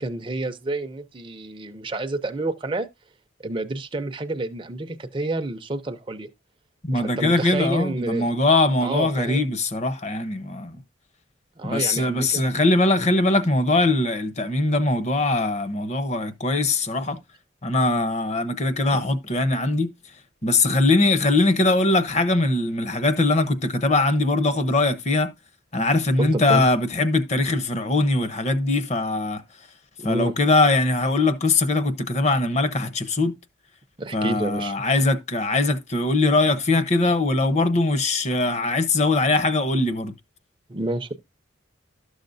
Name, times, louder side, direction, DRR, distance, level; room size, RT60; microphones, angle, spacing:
voice 1, 0.0-2.9 3.4-6.3 6.9-8.3 8.8-9.4 11.6-12.4 18.9-19.0 26.2-26.6 30.0-30.3 34.0-34.8 40.7-41.1, right 2 dB, 25° right, 0.5 m, -29 dB
voice 2, 6.8-10.8 11.6-17.2 17.6-19.9 20.4-25.3 25.7-29.4 30.0-33.3 34.1-40.1, left 2 dB, 35° left, 0.8 m, -21 dB
12.5 x 6.5 x 2.6 m
head